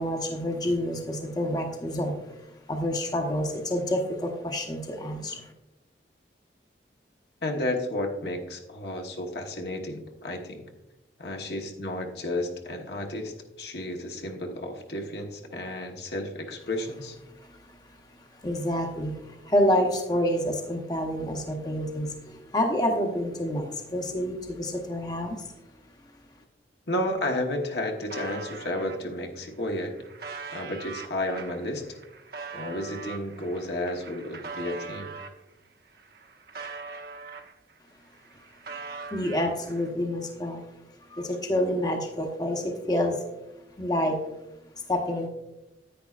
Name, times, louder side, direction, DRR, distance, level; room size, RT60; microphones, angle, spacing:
voice 1, 0.0-5.5 17.4-25.5 39.1-40.7 41.1-43.2 43.8-44.2 44.9-45.3, left 1 dB, 20° left, 2 dB, 0.9 m, -28 dB
voice 2, 7.4-10.6 11.2-17.2 26.9-29.9 30.5-31.8 32.5-35.1, left 1 dB, 65° left, 3 dB, 1.2 m, -32 dB
sound 1, 27.1-27.2 27.4-29.0 29.6-35.4 35.9-37.8 38.1-39.9, right 5 dB, 55° right, 0.9 m, -41 dB
10.0 x 9.2 x 2.4 m, 0.97 s
head